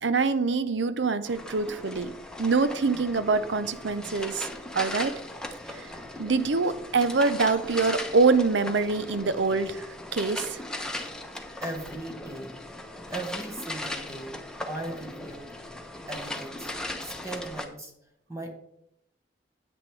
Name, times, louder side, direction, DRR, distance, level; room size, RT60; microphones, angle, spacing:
voice 1, 0.0-2.1 2.4-4.5 4.7-5.1 5.7-5.9 6.2-10.6, right 4 dB, 90° right, 12 dB, 0.7 m, -25 dB
sound 1, 1.3-17.6, left 1 dB, 5° left, 0.9 m, -38 dB
voice 2, 11.6-12.6 13.1-15.5 16.1-17.9 18.3-18.5, right 2 dB, 15° right, 2 dB, 1.2 m, -38 dB
9.7 x 8.8 x 3.3 m, 0.79 s
head